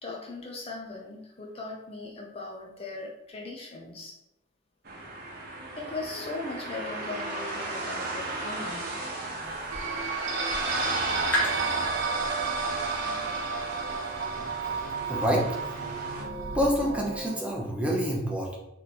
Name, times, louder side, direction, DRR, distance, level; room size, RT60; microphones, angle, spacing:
voice 1, 0.0-4.2 5.8-9.0 12.1-12.2, left 3 dB, 30° left, 0 dB, 0.5 m, -39 dB
sound 1, 4.8-16.2, right 2 dB, 50° right, 0.8 m, -35 dB
sound 2, 9.4-17.3, left 1 dB, 10° left, 1.3 m, -39 dB
sound 3, 9.7-17.4, right 4 dB, 80° right, 0.6 m, -32 dB
voice 2, 15.1-15.4 16.4-18.6, equal, 5° right, -2 dB, 0.7 m, -27 dB
3.3 x 2.9 x 4.1 m, 0.84 s
head